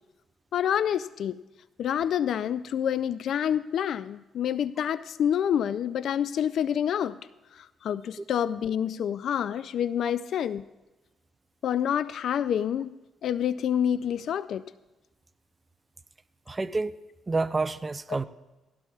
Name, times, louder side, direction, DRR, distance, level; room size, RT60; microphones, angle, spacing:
voice 1, 0.5-1.4 1.8-7.2 7.8-10.6 11.6-12.9 13.2-14.6, left 9 dB, 65° left, 15 dB, 0.3 m, -27 dB
voice 2, 16.5-16.9 17.3-18.2, right 3 dB, 25° right, 12 dB, 0.5 m, -28 dB
18.5 x 16.0 x 2.4 m, 1.1 s
cardioid pair, 90°, 0 cm